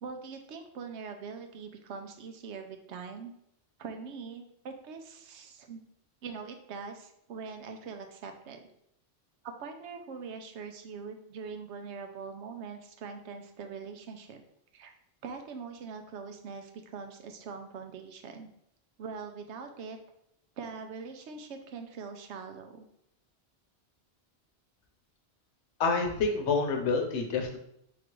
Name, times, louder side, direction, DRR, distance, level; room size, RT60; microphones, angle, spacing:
voice 1, 0.0-3.3 3.8-5.8 6.2-8.6 9.4-14.4 14.7-14.9 15.2-18.5 19.0-20.0 20.6-22.9, right 5 dB, 85° right, 5 dB, 0.9 m, -42 dB
voice 2, 25.8-27.6, left 4 dB, 90° left, 4 dB, 1.0 m, -28 dB
3.7 x 2.4 x 4.5 m, 0.75 s
omnidirectional pair, 1.1 m